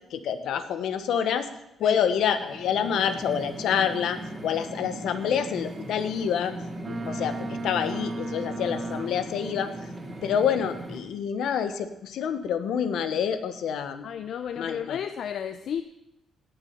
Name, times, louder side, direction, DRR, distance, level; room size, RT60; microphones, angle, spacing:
voice 1, 0.1-1.5 1.8-6.5 6.9-9.7 10.2-14.1 14.6-15.0, left 8 dB, 80° left, 10 dB, 1.1 m, -27 dB
sound 1, 2.0-11.0, right 1 dB, 15° right, 2.2 m, -39 dB
Boat Water vehicle, 6.8-9.5, right 2 dB, 35° right, 1.3 m, -35 dB
voice 2, 14.0-15.8, left 8 dB, 65° left, 10 dB, 0.6 m, -33 dB
17.5 x 6.9 x 5.9 m, 0.85 s
cardioid pair, 130°, 0 cm